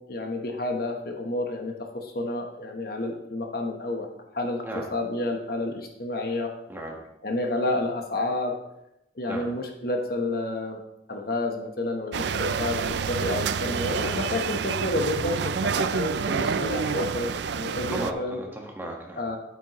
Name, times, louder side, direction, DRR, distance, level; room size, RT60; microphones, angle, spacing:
voice 1, 0.0-4.1 4.3-4.6 4.9-6.5 7.2-8.6 9.2-10.8 11.1-18.4 19.2-19.4, left 2 dB, 55° left, 3 dB, 1.1 m, -30 dB
voice 2, 6.7-7.0 9.2-9.4 14.0-14.3 15.6-15.9 17.9-19.2, right 1 dB, 10° right, -1 dB, 1.4 m, -36 dB
sound 1, 12.1-18.1, right 6 dB, 70° right, 0.4 m, -28 dB
9.3 x 8.9 x 3.1 m, 0.86 s
head